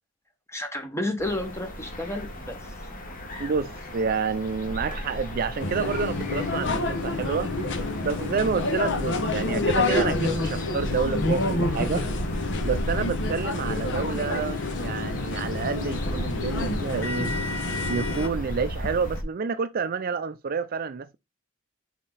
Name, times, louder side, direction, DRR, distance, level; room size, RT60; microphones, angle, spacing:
voice 1, 0.5-2.6, left 1 dB, 15° left, 1.4 m, -31 dB
sound 1, 1.2-19.2, equal, 40° left, 1.9 m, -35 dB
voice 2, 3.4-7.5 8.0-12.1 12.6-17.3 17.9-21.2, right 5 dB, 45° right, 0.4 m, -29 dB
sound 2, 5.6-18.3, left 2 dB, 60° left, 1.1 m, -28 dB
5.8 x 5.1 x 4.0 m
head